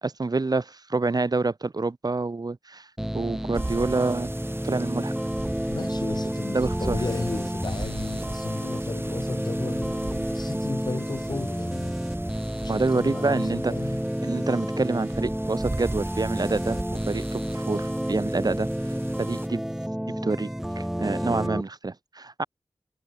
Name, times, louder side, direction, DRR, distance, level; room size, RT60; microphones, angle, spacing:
voice 1, 0.0-2.9 3.1-4.3 4.6-5.1 6.5-7.0 12.7-13.7 14.2-18.7 19.2-19.6 20.2-20.5 20.8-22.4, right 3 dB, 50° right, 3.0 m, -27 dB
sound 1, 3.0-21.6, equal, 5° right, 0.8 m, -30 dB
sound 2, 3.5-19.5, right 2 dB, 25° right, 3.3 m, -38 dB
voice 2, 5.7-12.0 12.6-14.1, left 3 dB, 55° left, 6.8 m, -34 dB
cardioid pair, 50°, 9 cm